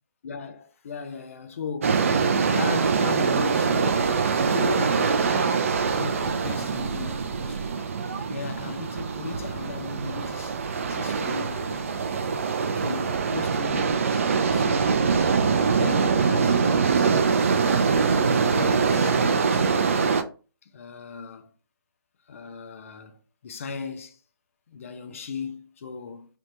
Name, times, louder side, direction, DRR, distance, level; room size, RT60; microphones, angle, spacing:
voice 1, 0.2-2.1 2.5-5.7 6.0-7.9 8.3-10.6 10.9-12.1 12.7-15.1 15.7-17.2 17.5-20.0 20.7-21.5 22.3-24.2 24.7-26.3, left 5 dB, 35° left, 0.5 m, -37 dB
sound 1, 1.8-20.2, right 5 dB, 35° right, 0.3 m, -23 dB
3.3 x 2.9 x 2.6 m
figure-of-eight pair, 155°, 12 cm